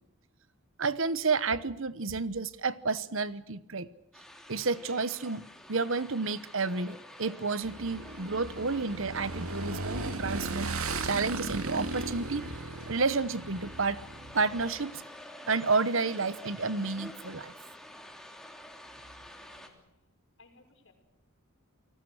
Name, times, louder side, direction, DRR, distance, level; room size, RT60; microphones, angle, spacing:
voice 1, 0.8-3.9 4.5-5.4 5.7-10.7 11.0-12.5 12.9-14.0 14.3-15.0 15.5-17.5, right 4 dB, 65° right, 16 dB, 1.1 m, -30 dB
sound 1, 4.1-19.7, left 1 dB, ahead, 2.9 m, -48 dB
Motorcycle / Engine, 7.6-14.7, right 2 dB, 85° right, 2.4 m, -37 dB
voice 2, 19.3-20.0 20.4-20.9, left 2 dB, 60° left, 5 dB, 5.9 m, -61 dB
29.0 x 19.0 x 6.5 m, 0.85 s
head